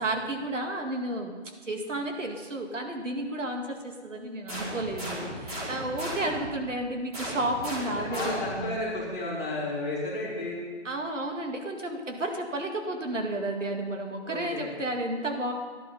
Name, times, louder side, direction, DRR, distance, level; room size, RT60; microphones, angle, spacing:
voice 1, 0.0-1.4 1.6-8.7 10.8-15.5, right 1 dB, 85° right, 3 dB, 2.0 m, -32 dB
sound 1, 4.5-6.5 7.1-8.7, equal, 30° right, 4.4 m, -36 dB
voice 2, 8.0-10.6 14.2-14.7, left 2 dB, 10° left, -7 dB, 2.7 m, -33 dB
13.0 x 11.5 x 5.5 m, 1.5 s
hypercardioid pair, 175°, 36 cm